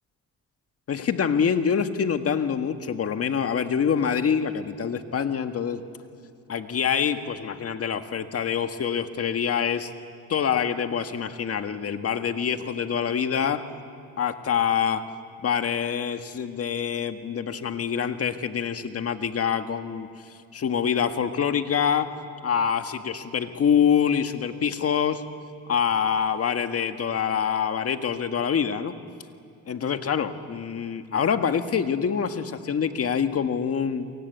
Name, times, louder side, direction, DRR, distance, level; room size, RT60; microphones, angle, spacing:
voice 1, 0.9-5.8 6.5-9.9 10.3-13.7 14.2-15.0 15.4-20.1 20.5-22.1 22.4-25.2 25.7-28.9 29.7-34.1, left 7 dB, 50° left, 8 dB, 1.7 m, -25 dB
29.0 x 23.5 x 8.3 m, 2.4 s
cardioid pair, 90°, 30 cm